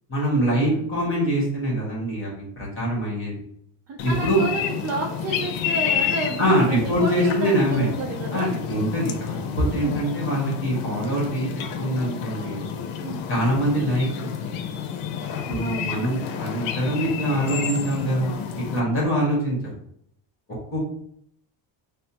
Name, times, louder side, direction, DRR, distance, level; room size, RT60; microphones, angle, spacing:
voice 1, 0.1-3.4 4.0-4.4 6.4-7.9 8.3-11.5 11.8-12.7 13.3-14.5 15.5-19.5 20.7-20.8, right 1 dB, 25° left, -4 dB, 1.4 m, -24 dB
voice 2, 3.9-8.5 9.7-10.0 13.0-13.2 15.6-15.9, right 3 dB, 35° right, 0 dB, 0.5 m, -31 dB
sound 1, 4.0-18.8, left 8 dB, 85° left, 0.6 m, -30 dB
5.3 x 2.1 x 2.8 m, 0.70 s
cardioid pair, 135°, 47 cm